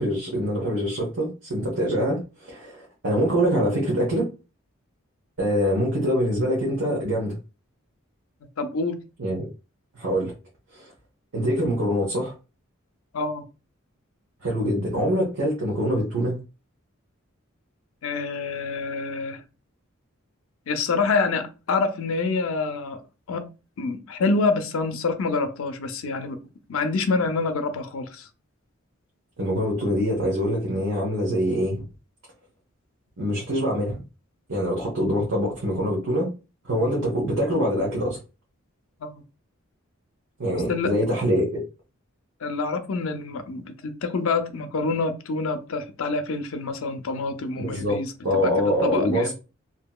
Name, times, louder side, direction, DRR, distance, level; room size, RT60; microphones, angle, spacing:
voice 1, 0.0-4.2 5.4-7.4 9.2-9.5 9.9-10.3 10.7-10.9 11.3-12.3 14.4-16.4 29.4-31.8 33.2-34.0 34.5-36.3 36.6-38.2 40.4-41.6 47.6-48.0 48.2-49.3, equal, 75° right, 1.0 m, -24 dB
voice 2, 8.6-9.0 13.1-13.4 18.0-19.4 20.7-23.0 23.3-23.5 23.8-26.4 26.7-28.3 39.0-39.2 40.5-40.9 42.4-49.3, left 3 dB, 75° left, 0.5 m, -27 dB
2.8 x 2.7 x 2.2 m
head